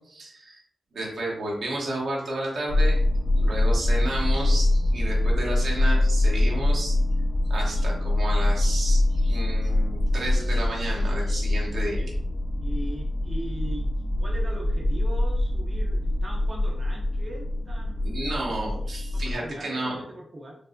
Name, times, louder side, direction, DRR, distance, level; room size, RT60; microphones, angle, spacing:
voice 1, 0.1-0.6 0.9-3.0 3.4-7.0 7.5-12.1 18.0-20.0, right 1 dB, 80° right, -3 dB, 1.0 m, -32 dB
sound 1, 2.7-19.3, left 1 dB, 65° left, 0.4 m, -24 dB
voice 2, 12.6-13.9 14.2-18.3 19.1-20.6, right 1 dB, 40° right, -2 dB, 0.7 m, -40 dB
4.4 x 2.0 x 2.6 m, 0.69 s
cardioid pair, 55°, 0 cm